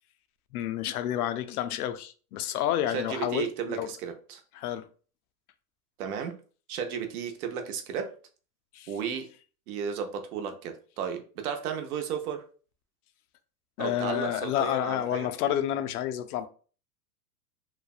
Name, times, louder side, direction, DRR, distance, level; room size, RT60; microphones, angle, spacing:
voice 1, 0.5-3.9 4.5-4.9 8.7-8.9 13.8-16.5, left 11 dB, 75° left, 0.5 m, -30 dB
voice 2, 2.9-4.4 6.0-6.4 6.7-8.1 8.9-9.3 9.7-12.4 13.8-15.3, right 7 dB, 70° right, 0.7 m, -34 dB
3.2 x 2.0 x 2.3 m
supercardioid pair, 140°, 46 cm